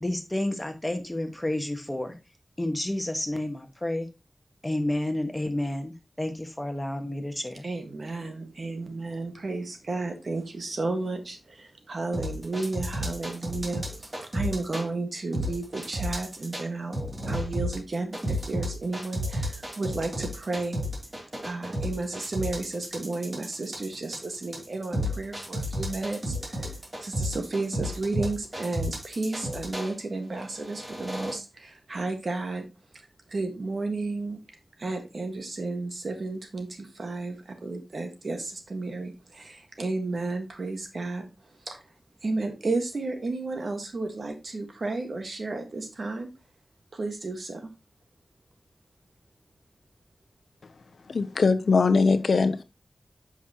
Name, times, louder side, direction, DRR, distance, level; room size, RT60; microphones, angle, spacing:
voice 1, 0.0-2.1 2.6-4.1 4.6-7.6, left 1 dB, 15° left, 5 dB, 1.4 m, -30 dB
voice 2, 7.6-17.0 17.3-20.8 21.4-32.7 32.9-34.4 34.8-41.3 41.6-41.8 42.2-46.3 46.9-47.7, right 3 dB, 65° right, 5 dB, 1.6 m, -33 dB
sound 1, 12.1-14.8 15.3-16.6 16.9-29.9 30.5-31.3, equal, 30° right, 2.7 m, -32 dB
voice 3, 51.1-52.6, left 4 dB, 80° left, 10 dB, 0.6 m, -21 dB
7.5 x 5.8 x 2.9 m, 0.27 s
wide cardioid pair, 75°, 0 cm